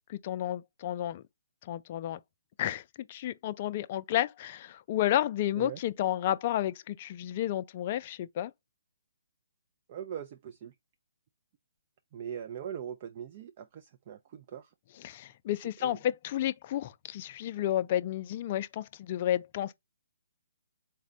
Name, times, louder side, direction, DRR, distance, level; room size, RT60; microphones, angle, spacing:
voice 1, 0.1-1.2 1.6-2.2 2.6-2.8 3.1-8.5 15.0-19.7, left 12 dB, 40° left, 0.3 m, -31 dB
voice 2, 9.9-10.7 12.1-14.7 15.8-16.0, right 9 dB, 40° right, 0.4 m, -41 dB
4.0 x 2.1 x 3.7 m
figure-of-eight pair, 135°, 0 cm